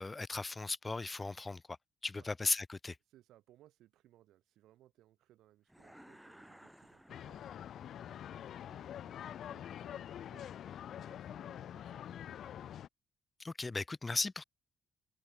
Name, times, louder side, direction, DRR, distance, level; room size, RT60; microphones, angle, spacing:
voice 1, 0.0-1.6 2.0-2.9 13.4-14.4, left 3 dB, 25° left, 0.4 m, -36 dB
voice 2, 3.0-12.7, right 14 dB, 85° right, 6.1 m, -66 dB
sound 1, 5.7-8.0, equal, 5° right, 2.2 m, -58 dB
sound 2, 7.1-12.9, left 10 dB, 70° left, 1.7 m, -46 dB
cardioid pair, 90°, 0 cm